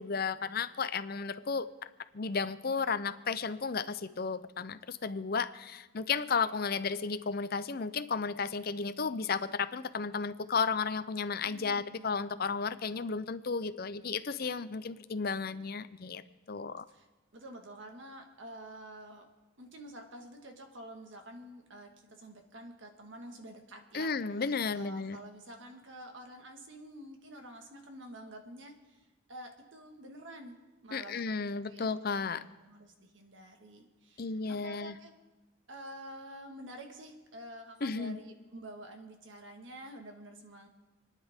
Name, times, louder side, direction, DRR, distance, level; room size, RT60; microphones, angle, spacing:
voice 1, 0.0-1.7 2.1-16.2 16.5-16.8 23.9-25.2 30.9-32.4 34.2-35.0 37.8-38.2, left 5 dB, 50° left, 12 dB, 0.6 m, -33 dB
voice 2, 11.4-12.2 16.9-19.3 19.6-24.1 24.7-29.0 29.3-30.5 30.8-31.9 32.3-35.1 35.7-40.7, right 1 dB, 65° right, 4 dB, 1.8 m, -49 dB
29.0 x 10.0 x 3.7 m, 1.2 s
head